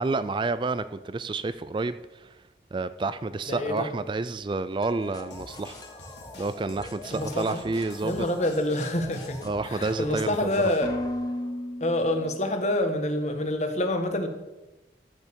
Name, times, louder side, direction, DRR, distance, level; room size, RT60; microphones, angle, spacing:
voice 1, 0.0-2.3 2.7-5.8 6.4-8.2 9.4-10.4, right 3 dB, 25° right, 13 dB, 0.3 m, -29 dB
voice 2, 3.5-3.9 7.1-7.6 8.0-9.4 9.6-10.9 11.8-14.3, left 1 dB, 40° left, 6 dB, 1.4 m, -27 dB
sound 1, 4.8-12.6, left 1 dB, 20° left, 1.3 m, -39 dB
sound 2, 5.3-10.9, left 2 dB, 80° left, 3.7 m, -47 dB
14.0 x 6.6 x 6.9 m, 1.1 s
head